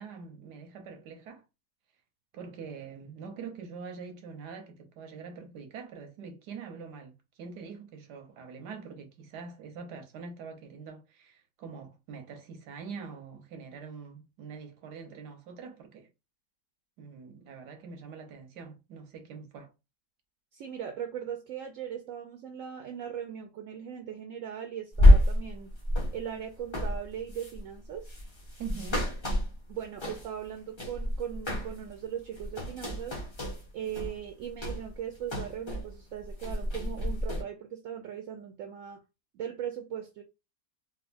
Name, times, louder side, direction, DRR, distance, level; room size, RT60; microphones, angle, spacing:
voice 1, 0.0-1.4 2.3-16.1 17.0-19.7 28.6-29.1, right 5 dB, 85° right, 1.4 m, -44 dB
voice 2, 20.5-25.7 26.1-28.1 29.7-33.2 33.7-39.0 39.3-40.2, right 9 dB, 70° right, 0.8 m, -39 dB
sound 1, 24.9-30.5 30.8-31.9 32.2-35.9 36.2-37.4, left 1 dB, 20° left, 0.8 m, -27 dB
4.1 x 2.4 x 2.5 m
omnidirectional pair, 1.7 m